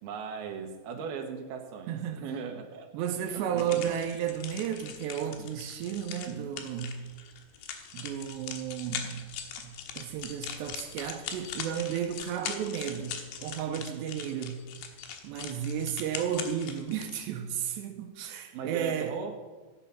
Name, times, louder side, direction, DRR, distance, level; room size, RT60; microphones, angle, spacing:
voice 1, 0.0-2.9 3.3-4.0 5.4-5.5 6.3-6.5 18.5-19.4, right 6 dB, 70° right, 3.1 m, -38 dB
voice 2, 1.9-2.2 2.9-7.0 7.9-9.2 9.6-14.6 15.2-19.1, right 9 dB, 85° right, 3.1 m, -33 dB
sound 1, 3.6-17.3, left 8 dB, 90° left, 3.5 m, -41 dB
16.0 x 10.5 x 5.8 m
omnidirectional pair, 4.9 m